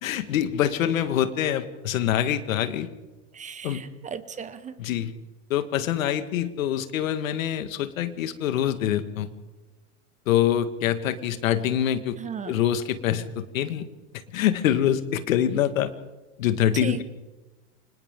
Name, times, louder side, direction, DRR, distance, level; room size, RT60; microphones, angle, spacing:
voice 1, 0.0-2.9 3.6-3.8 4.8-5.1 5.5-9.3 10.3-12.2 12.5-13.9 14.3-15.9 16.4-17.0, left 10 dB, 85° left, 10 dB, 1.8 m, -25 dB
voice 2, 3.3-4.8 12.2-12.6 16.7-17.0, right 7 dB, 20° right, 13 dB, 1.1 m, -36 dB
29.0 x 25.5 x 3.8 m, 1.1 s
supercardioid pair, 130°, 39 cm